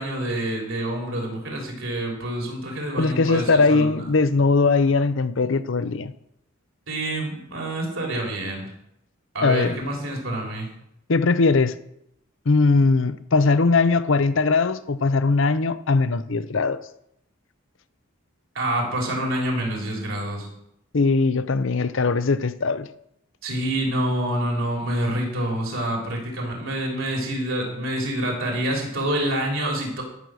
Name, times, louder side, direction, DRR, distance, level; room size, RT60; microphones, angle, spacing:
voice 1, 0.0-4.1 6.9-8.7 9.3-10.7 18.6-20.5 23.4-30.0, right 1 dB, 65° right, 3.5 m, -27 dB
voice 2, 3.0-6.1 9.4-9.8 11.1-11.8 12.5-16.8 20.9-22.9, left 3 dB, 60° left, 0.6 m, -20 dB
14.0 x 6.3 x 6.3 m
head